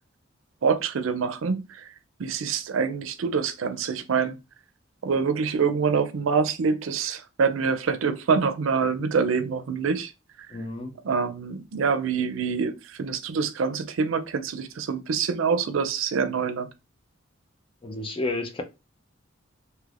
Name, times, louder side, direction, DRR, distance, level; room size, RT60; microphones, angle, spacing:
voice 1, 0.6-1.9 2.2-4.4 5.0-10.1 11.0-16.7, right 5 dB, 90° right, 0.4 m, -25 dB
voice 2, 10.5-10.9 17.8-18.6, left 2 dB, 25° left, 0.5 m, -31 dB
3.2 x 2.8 x 2.4 m
head